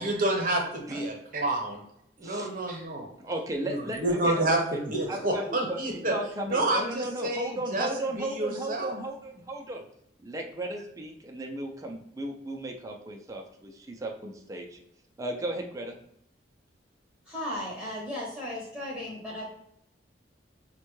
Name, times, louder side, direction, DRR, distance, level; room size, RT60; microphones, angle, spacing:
voice 1, 0.0-1.8 2.2-3.1 3.7-6.1 6.5-7.9 8.2-8.9, right 1 dB, 50° right, 2 dB, 0.8 m, -29 dB
voice 2, 3.2-4.6 5.1-9.8 10.2-14.8 15.2-15.9, right 1 dB, 20° right, 2 dB, 0.4 m, -35 dB
voice 3, 17.3-19.4, left 1 dB, ahead, -6 dB, 0.8 m, -35 dB
5.3 x 2.1 x 3.0 m, 0.74 s
head